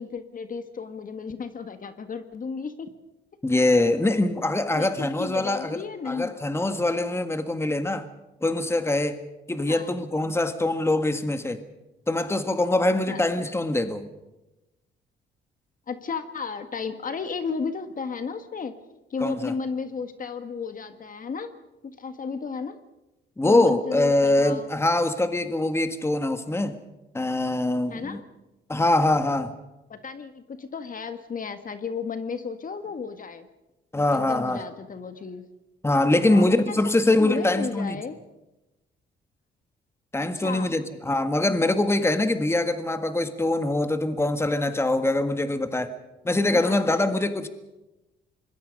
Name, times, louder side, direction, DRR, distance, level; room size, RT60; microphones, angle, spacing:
voice 1, 0.0-2.9 4.7-6.4 9.7-10.0 13.1-13.3 15.9-18.7 19.1-21.5 22.0-22.8 23.4-24.7 27.5-28.2 29.9-33.5 34.1-35.5 36.3-36.7 37.2-38.2 40.3-40.8 46.5-47.0, left 5 dB, 45° left, 1.7 m, -33 dB
voice 2, 3.4-5.8 6.1-8.1 8.4-9.2 9.5-11.6 12.1-14.1 19.2-19.5 23.4-26.8 27.1-28.2 28.7-29.5 33.9-34.6 35.8-38.0 40.1-45.9 46.2-47.5, left 2 dB, 15° left, 1.7 m, -23 dB
26.0 x 21.5 x 5.4 m
cardioid pair, 90°, 20 cm